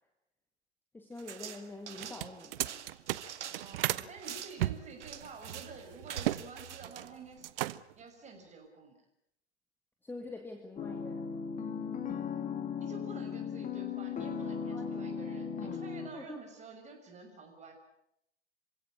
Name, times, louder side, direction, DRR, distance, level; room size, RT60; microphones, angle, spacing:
voice 1, 0.9-2.8 10.0-11.5 14.7-15.1 16.1-16.4, left 2 dB, 5° left, 5 dB, 2.0 m, -46 dB
sound 1, 1.2-7.7, right 9 dB, 75° right, 2.1 m, -46 dB
sound 2, 1.9-4.1 4.6-6.4 6.7-7.1 7.4-8.0, right 15 dB, 50° right, 0.9 m, -34 dB
voice 2, 3.6-7.6 8.0-8.9 12.8-17.7, right 4 dB, 20° right, 4 dB, 6.3 m, -49 dB
sound 3, 10.8-16.1, left 6 dB, 20° left, 2.6 m, -37 dB
26.5 x 16.5 x 8.8 m, 0.77 s
hypercardioid pair, 125°, 35 cm